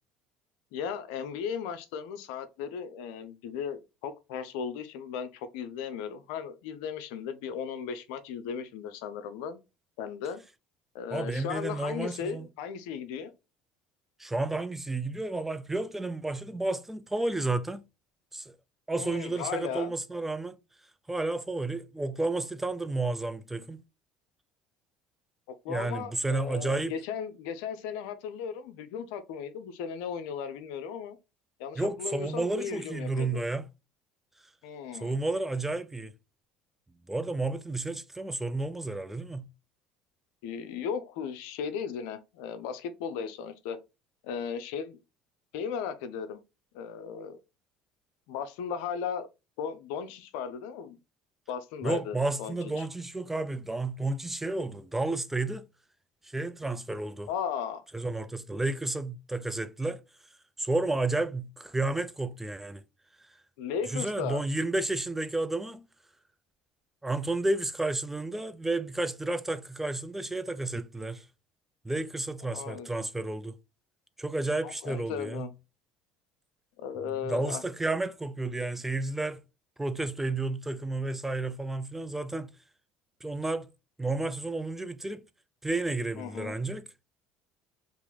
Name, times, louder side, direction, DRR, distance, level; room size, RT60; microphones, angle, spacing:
voice 1, 0.7-9.6 10.0-10.4 10.9-13.3 19.0-19.9 25.5-31.2 31.6-33.4 34.6-35.1 40.4-43.8 44.2-45.0 45.5-46.4 46.7-47.4 48.3-49.3 49.6-51.0 51.5-52.8 57.3-57.8 63.6-64.4 72.4-72.9 74.6-75.5 76.8-77.6 86.2-86.6, left 7 dB, 80° left, 0.5 m, -36 dB
voice 2, 11.1-12.5 14.2-17.9 18.3-18.5 18.9-20.6 21.1-23.8 25.7-27.0 31.8-33.7 35.0-36.1 37.1-39.5 51.8-55.7 56.2-57.3 57.9-60.0 60.6-62.8 63.9-65.9 67.0-71.3 71.8-73.5 74.2-75.5 77.2-79.4 79.8-82.5 83.2-83.7 84.0-85.2 85.6-86.9, right 2 dB, 10° right, 0.4 m, -31 dB
2.9 x 2.5 x 3.8 m
supercardioid pair, 85°, 3 cm